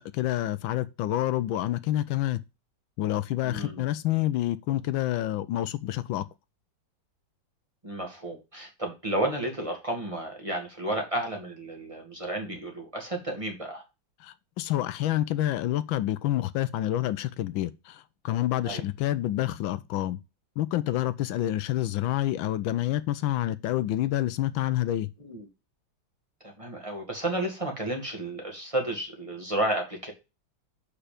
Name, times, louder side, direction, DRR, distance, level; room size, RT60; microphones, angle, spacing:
voice 1, 0.0-2.4 3.0-6.2 14.2-20.2 20.6-25.1, left 13 dB, 85° left, 1.4 m, -28 dB
voice 2, 3.4-3.9 7.8-13.8 18.6-18.8 25.2-25.5 26.4-30.1, right 1 dB, 15° right, 2.0 m, -32 dB
6.9 x 5.7 x 5.1 m
omnidirectional pair, 2.1 m